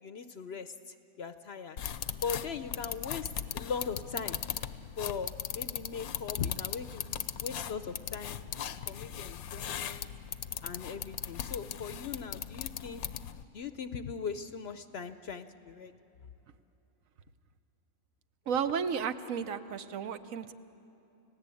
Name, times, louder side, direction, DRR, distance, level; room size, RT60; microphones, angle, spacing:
voice 1, 0.0-1.8 2.2-4.4 5.0-8.4 8.9-10.1 10.6-13.0 13.5-15.9, left 6 dB, 55° left, 10 dB, 0.8 m, -39 dB
sound 1, 1.8-13.4, left 9 dB, 85° left, 1.2 m, -39 dB
voice 2, 18.5-20.5, right 7 dB, 70° right, 11 dB, 1.2 m, -33 dB
30.0 x 16.5 x 8.4 m, 2.9 s
omnidirectional pair, 1.5 m